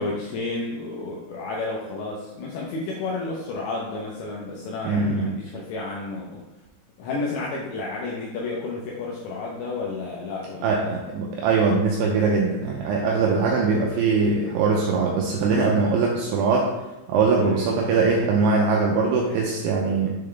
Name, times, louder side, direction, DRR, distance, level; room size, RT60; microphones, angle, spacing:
voice 1, 0.0-6.4 7.0-10.9 17.4-17.8, left 3 dB, 85° left, -3 dB, 2.6 m, -31 dB
voice 2, 4.8-5.3 10.6-16.7 17.1-20.1, right 4 dB, 85° right, -1 dB, 2.7 m, -21 dB
7.4 x 3.9 x 3.2 m, 1.0 s
omnidirectional pair, 5.9 m